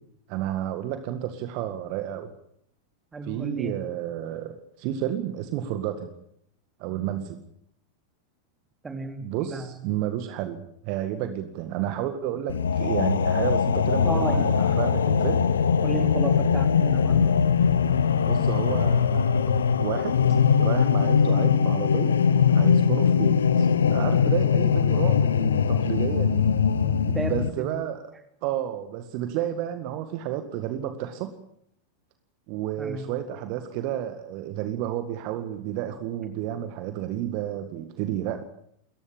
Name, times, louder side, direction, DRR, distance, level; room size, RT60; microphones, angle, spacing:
voice 1, 0.3-2.3 3.2-6.1 6.8-7.4 9.2-15.5 18.2-19.5 19.8-20.2 20.6-22.2 22.5-26.5 27.3-28.1 28.4-31.3 32.5-38.4, right 11 dB, 45° right, 8 dB, 1.9 m, -31 dB
voice 2, 3.1-3.9 8.8-9.7 14.0-14.9 15.8-17.4 26.2-27.8 32.8-33.1, right 3 dB, 15° right, 5 dB, 3.8 m, -34 dB
sound 1, 12.5-27.5, left 6 dB, 70° left, 1.1 m, -21 dB
28.0 x 15.0 x 8.7 m, 0.73 s
figure-of-eight pair, 90°, 0 cm